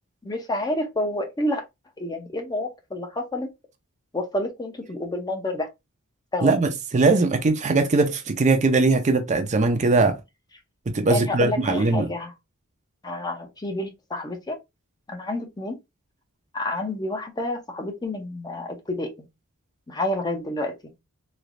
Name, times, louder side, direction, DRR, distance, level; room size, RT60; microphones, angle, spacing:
voice 1, 0.2-1.6 2.0-3.5 4.1-5.7 6.3-6.5 11.1-12.3 13.0-14.6 15.1-15.8 16.5-19.3 19.9-20.7, left 1 dB, 20° left, 0.6 m, -29 dB
voice 2, 6.4-10.2 10.9-12.1, right 3 dB, 30° right, 0.5 m, -20 dB
3.2 x 3.0 x 2.4 m
head